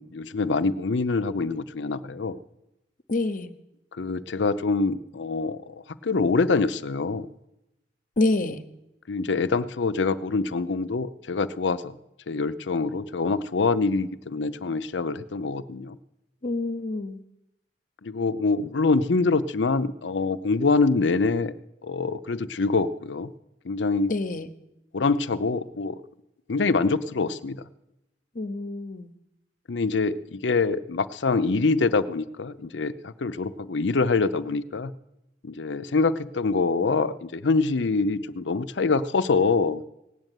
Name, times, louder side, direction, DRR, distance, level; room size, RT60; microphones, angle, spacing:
voice 1, 0.0-2.4 4.0-7.3 9.1-11.9 12.3-16.0 18.0-21.5 21.8-23.3 23.6-24.1 24.9-26.0 26.5-27.6 29.7-34.9 35.4-39.8, left 3 dB, 85° left, 15 dB, 0.6 m, -25 dB
voice 2, 3.1-3.6 8.2-8.6 16.4-17.2 24.1-24.5 28.3-29.1, left 2 dB, 50° left, 10 dB, 0.9 m, -27 dB
18.0 x 7.9 x 9.1 m, 0.91 s
head